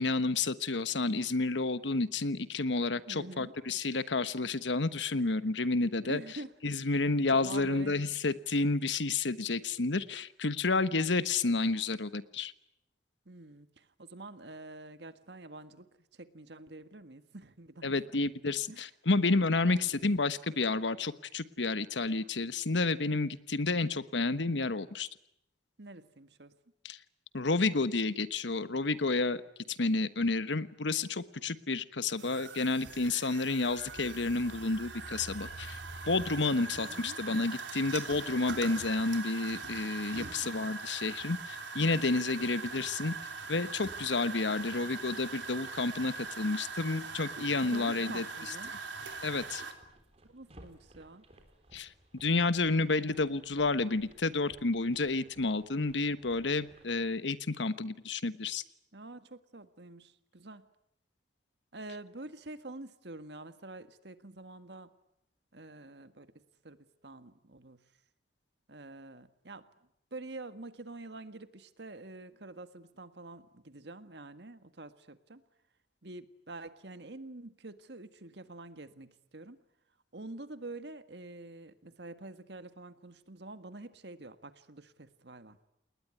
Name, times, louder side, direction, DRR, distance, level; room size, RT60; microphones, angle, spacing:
voice 1, 0.0-6.2 6.6-12.5 17.8-25.1 26.8-27.0 27.3-29.4 29.7-35.8 36.1-43.1 43.5-48.2 49.2-49.6 51.7-51.9 52.2-58.6, left 3 dB, 80° left, 14 dB, 1.2 m, -30 dB
voice 2, 3.0-3.5 6.0-6.5 7.3-8.0 13.3-17.9 18.7-18.8 19.6-19.9 25.8-26.5 36.6-37.2 47.6-48.7 50.2-51.2 58.9-60.7 61.7-64.9 65.5-66.3 66.6-67.8 68.7-69.7 70.1-75.4 76.0-79.6 80.1-85.6, right 2 dB, 65° right, 10 dB, 1.7 m, -47 dB
sound 1, 32.2-49.7, right 4 dB, 90° right, 3.7 m, -42 dB
sound 2, 49.0-57.0, right 1 dB, 35° right, 4.0 m, -59 dB
29.0 x 20.0 x 9.7 m, 0.78 s
head